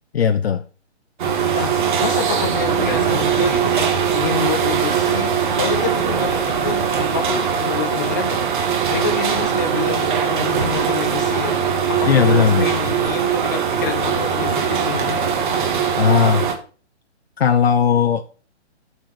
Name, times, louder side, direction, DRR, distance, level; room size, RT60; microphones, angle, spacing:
voice 1, 0.1-0.6 12.0-12.7 16.0-16.5 17.4-18.2, left 7 dB, 60° left, 0.9 m, -17 dB
sound 1, 1.2-16.5, right 7 dB, 45° right, 2.0 m, -20 dB
voice 2, 1.5-8.4 8.9-15.2, left 7 dB, 15° left, 0.6 m, -28 dB
9.1 x 4.6 x 6.7 m
hypercardioid pair, 160°, 35 cm